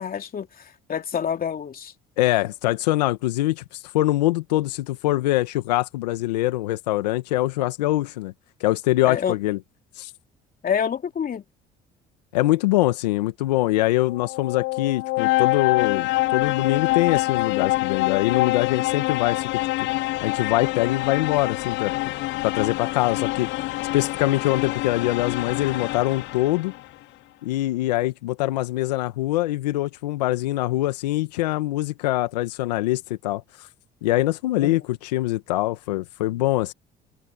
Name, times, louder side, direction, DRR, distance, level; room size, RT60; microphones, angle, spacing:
voice 1, 0.0-1.9 9.0-9.4 10.6-11.4 34.6-34.8, left 8 dB, 45° left, 3.2 m, -27 dB
voice 2, 2.2-8.3 8.6-9.6 10.0-10.1 12.3-19.5 20.2-21.9 22.4-23.5 23.9-26.7 27.4-33.4 34.0-36.7, left 17 dB, 85° left, 1.7 m, -23 dB
sound 1, 14.0-26.8, left 20 dB, 65° left, 0.7 m, -26 dB
hypercardioid pair, 65°, 21 cm